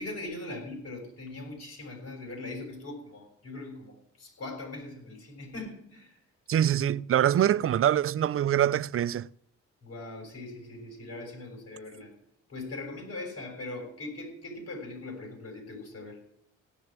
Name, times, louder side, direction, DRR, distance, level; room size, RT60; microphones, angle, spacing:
voice 1, 0.0-6.2 7.4-7.7 9.8-12.1 12.5-16.2, left 2 dB, 55° left, 7.0 m, -41 dB
voice 2, 6.5-9.3, right 10 dB, 45° right, 0.5 m, -24 dB
17.0 x 6.5 x 9.0 m
cardioid pair, 90°, 30 cm